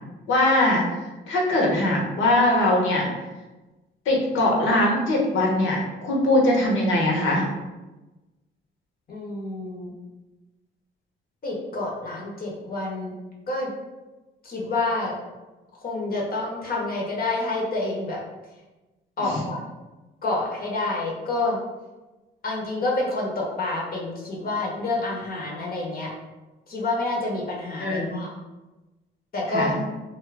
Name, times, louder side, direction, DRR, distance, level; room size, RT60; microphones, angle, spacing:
voice 1, 0.3-1.0 1.3-3.1 4.1-7.4 27.8-28.1 29.5-29.8, left 1 dB, 80° left, -2 dB, 0.9 m, -21 dB
voice 2, 9.1-9.9 11.4-13.1 13.5-13.7 14.4-15.2 15.8-18.2 19.2-19.6 20.2-21.6 22.4-26.1 26.7-28.3 29.3-29.8, left 2 dB, 50° left, -3 dB, 0.8 m, -28 dB
2.6 x 2.4 x 3.3 m, 1.1 s
cardioid pair, 90°, 20 cm